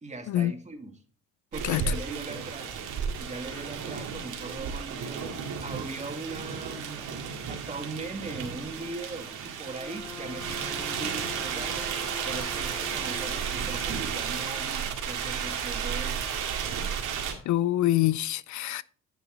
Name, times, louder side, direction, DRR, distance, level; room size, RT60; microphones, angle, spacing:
voice 1, 0.0-1.0 1.5-2.8 3.2-7.2 7.5-16.3, right 3 dB, 25° right, 2.0 m, -40 dB
sound 1, 1.5-17.3, right 7 dB, 85° right, 2.1 m, -33 dB
Wind instrument woodwind instrument, 9.6-14.5, left 2 dB, 5° left, 2.0 m, -44 dB
voice 2, 17.5-18.8, left 14 dB, 70° left, 0.5 m, -25 dB
10.0 x 7.0 x 3.8 m
cardioid pair, 90°, 30 cm